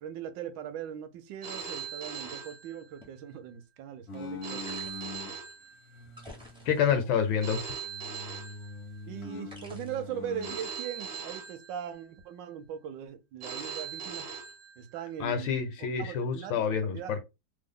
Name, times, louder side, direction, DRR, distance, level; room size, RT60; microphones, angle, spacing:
voice 1, 0.0-4.6 9.1-14.3 14.8-17.1, right 9 dB, 75° right, 1.2 m, -40 dB
Telephone, 1.4-3.3 4.4-6.3 7.4-9.3 10.4-12.3 13.4-15.3, right 6 dB, 50° right, 0.8 m, -41 dB
sound 1, 2.1-2.3 3.0-3.1 4.7-5.3 6.1-7.1 7.6-8.2 9.5-10.1 11.0-11.2, left 1 dB, 10° right, 0.3 m, -51 dB
sound 2, 4.1-5.3 5.9-7.6 7.9-10.6, left 3 dB, 65° left, 0.7 m, -43 dB
voice 2, 6.6-7.6 15.2-17.2, left 7 dB, 90° left, 1.4 m, -28 dB
3.3 x 2.0 x 3.6 m
omnidirectional pair, 2.1 m